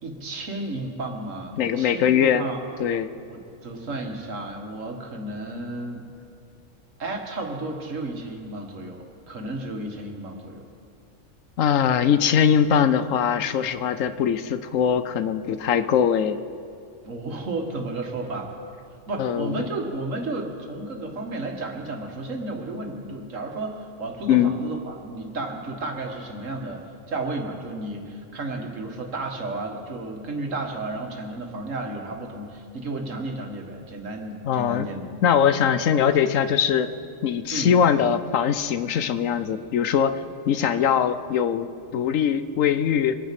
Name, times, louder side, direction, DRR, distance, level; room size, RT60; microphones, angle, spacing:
voice 1, 0.0-2.6 3.3-6.1 7.0-10.7 17.0-18.5 19.1-35.1 37.5-37.7, right 2 dB, 80° right, 2 dB, 2.1 m, -33 dB
voice 2, 1.6-2.4 2.8-3.1 11.6-16.4 19.2-19.7 24.3-24.5 34.4-34.9 35.2-36.9 37.2-40.2 40.5-43.2, left 8 dB, 90° left, 12 dB, 1.1 m, -21 dB
24.5 x 9.6 x 5.9 m, 2.4 s
omnidirectional pair, 1.3 m